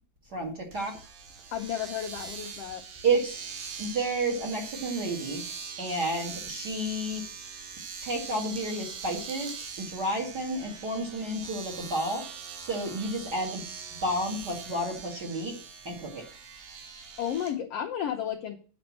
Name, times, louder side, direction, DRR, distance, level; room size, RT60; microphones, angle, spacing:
voice 1, 0.3-0.9 3.0-3.4 3.8-7.2 8.0-12.2 12.6-13.6 14.0-15.5 15.8-16.3, right 2 dB, 35° right, 0 dB, 2.1 m, -31 dB
Domestic sounds home sounds, 0.7-17.5, right 6 dB, 90° right, 3.1 m, -42 dB
voice 2, 1.5-2.8 17.2-18.6, left 9 dB, 75° left, 3 dB, 1.4 m, -32 dB
9.0 x 5.3 x 7.3 m, 0.40 s
omnidirectional pair, 3.9 m